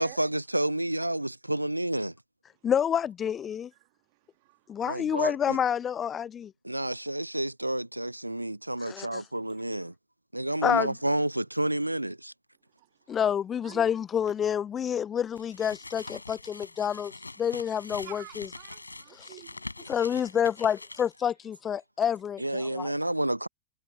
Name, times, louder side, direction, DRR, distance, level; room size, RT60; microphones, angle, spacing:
voice 1, 0.0-2.1 4.8-5.6 6.6-9.9 10.3-12.3 22.4-23.5, right 1 dB, 85° right, 0.7 m, -30 dB
voice 2, 2.6-3.7 4.7-6.5 8.8-9.2 10.6-10.9 13.1-17.1 17.4-18.5 19.9-22.9, left 8 dB, 25° left, 0.6 m, -28 dB
voice 3, 12.8-13.3 13.6-14.0 18.0-19.6, right 26 dB, 50° right, 1.9 m, -49 dB
sound 1, 15.3-21.3, left 2 dB, 80° left, 6.7 m, -44 dB
figure-of-eight pair, 90°, 0 cm